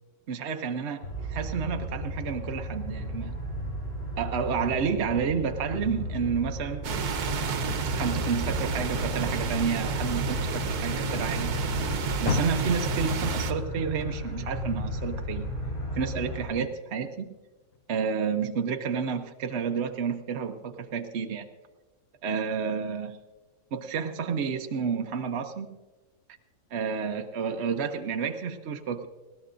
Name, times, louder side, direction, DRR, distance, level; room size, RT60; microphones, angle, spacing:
voice 1, 0.3-3.3 4.2-6.9 7.9-11.5 12.2-15.5 15.9-17.3 17.9-21.5 22.2-23.1 23.7-25.8 26.7-29.1, right 6 dB, 55° right, 5 dB, 0.9 m, -30 dB
sound 1, 1.0-16.5, equal, 45° left, 3.5 m, -34 dB
sound 2, 6.8-13.5, right 5 dB, 85° right, 1.5 m, -30 dB
Car, 12.2-15.5 15.9-17.3 17.7-17.8 18.4-18.5, left 7 dB, 65° left, 1.1 m, -37 dB
20.0 x 16.5 x 2.6 m, 1.2 s
omnidirectional pair, 1.6 m